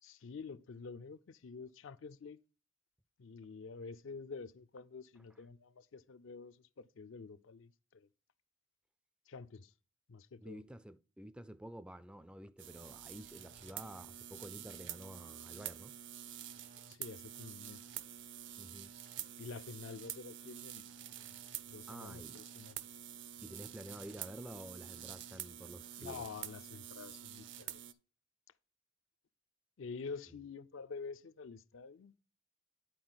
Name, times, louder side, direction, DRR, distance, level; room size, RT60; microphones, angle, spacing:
voice 1, 0.0-2.4 3.2-8.1 9.3-9.7 10.1-10.6 16.9-17.8 19.4-20.8 21.7-22.8 26.0-27.8 29.8-32.2, left 4 dB, 70° left, 0.5 m, -48 dB
voice 2, 10.4-15.9 18.6-18.9 21.9-22.4 23.4-26.3, equal, 5° right, 0.3 m, -50 dB
sound 1, 12.6-27.9, right 11 dB, 60° right, 0.6 m, -48 dB
10.5 x 4.4 x 3.9 m
head